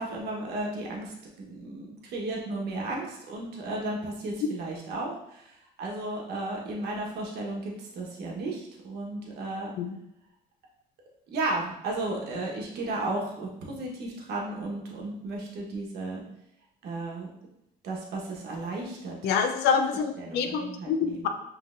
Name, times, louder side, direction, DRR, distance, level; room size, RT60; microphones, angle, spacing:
voice 1, 0.0-5.5 5.8-9.7 11.3-16.2 16.8-17.3 17.8-19.3 19.7-19.8 20.2-21.3, right 2 dB, 70° right, -1 dB, 1.2 m, -34 dB
voice 2, 19.2-21.3, left 6 dB, 80° left, 7 dB, 0.5 m, -26 dB
5.2 x 3.3 x 2.5 m, 0.82 s
cardioid pair, 110°, 17 cm